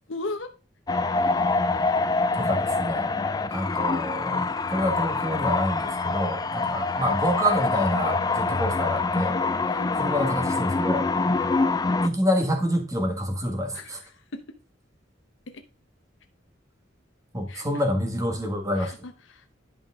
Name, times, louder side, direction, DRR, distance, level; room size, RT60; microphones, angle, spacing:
voice 1, 0.1-0.5 9.6-9.9 13.7-14.4 15.5-15.6 17.5-17.7 18.8-19.6, left 2 dB, 85° left, 6 dB, 0.9 m, -37 dB
sound 1, 0.9-12.1, left 3 dB, 20° left, 0.4 m, -25 dB
voice 2, 2.3-3.1 3.5-9.4 9.9-11.1 12.0-14.0 17.3-18.9, equal, 15° right, 4 dB, 1.5 m, -27 dB
11.0 x 5.1 x 3.6 m, 0.32 s
head